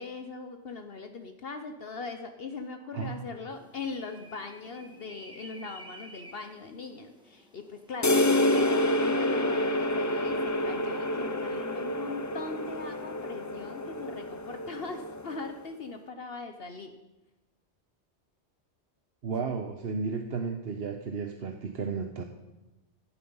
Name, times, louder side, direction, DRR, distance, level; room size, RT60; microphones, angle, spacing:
voice 1, 0.0-16.9, left 4 dB, 60° left, 6 dB, 1.2 m, -40 dB
voice 2, 2.9-3.2 19.2-22.2, right 5 dB, 60° right, 5 dB, 1.2 m, -33 dB
sound 1, 3.5-9.1, right 1 dB, 5° right, 2.0 m, -52 dB
sound 2, 8.0-15.6, left 1 dB, 20° left, 0.6 m, -28 dB
17.0 x 11.5 x 5.6 m, 1.0 s
omnidirectional pair, 1.1 m